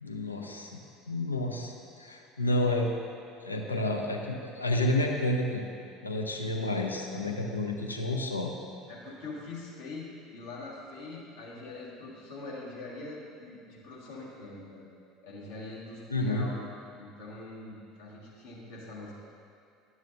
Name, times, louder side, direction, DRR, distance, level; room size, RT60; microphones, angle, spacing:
voice 1, 0.0-0.8 1.1-2.9 3.4-5.6 6.0-8.5 16.1-16.5, left 1 dB, 85° left, 1 dB, 0.5 m, -30 dB
voice 2, 8.9-14.9 15.2-16.6 17.0-19.1, left 2 dB, 65° left, -5 dB, 1.6 m, -43 dB
11.0 x 6.2 x 2.6 m, 2.5 s
figure-of-eight pair, 65°, 0 cm